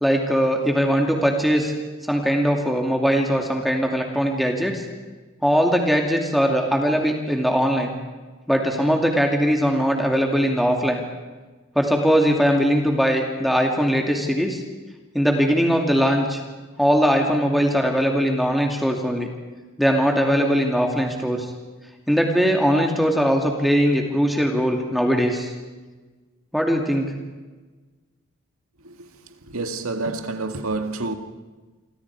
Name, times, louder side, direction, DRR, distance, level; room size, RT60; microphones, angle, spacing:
voice 1, 0.0-1.7 2.1-4.8 5.4-7.9 8.5-11.0 11.8-14.6 15.1-16.4 16.8-19.3 19.8-21.5 22.1-25.5 26.5-27.1, equal, ahead, 2.4 m, -20 dB
voice 2, 29.4-31.2, right 3 dB, 80° right, 2.0 m, -28 dB
28.0 x 25.0 x 4.8 m
head